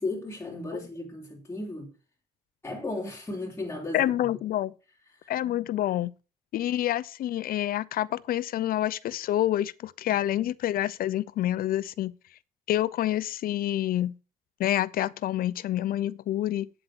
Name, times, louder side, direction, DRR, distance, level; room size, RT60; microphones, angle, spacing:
voice 1, 0.0-1.9 2.6-4.0 5.2-5.3 10.1-10.2, left 2 dB, 15° left, 4.2 m, -35 dB
voice 2, 3.9-4.7 5.3-6.1 6.5-12.1 12.7-14.1 14.6-16.7, left 13 dB, 60° left, 0.7 m, -27 dB
9.1 x 7.7 x 6.4 m
cardioid pair, 110°, 17 cm